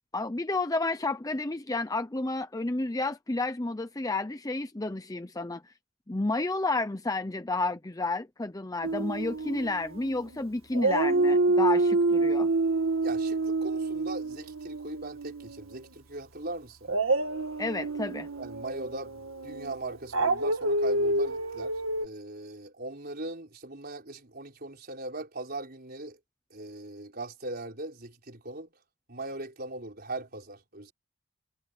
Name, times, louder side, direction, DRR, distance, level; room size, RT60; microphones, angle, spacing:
voice 1, 0.1-5.6 6.1-12.5 17.6-18.3, left 2 dB, 15° left, 0.7 m, -31 dB
Dog, 8.8-10.4 10.7-15.8 16.8-22.1, right 2 dB, 80° right, 1.9 m, -28 dB
voice 2, 13.0-16.9 18.4-26.2 26.5-28.7 29.1-30.9, right 2 dB, 50° right, 4.6 m, -40 dB
head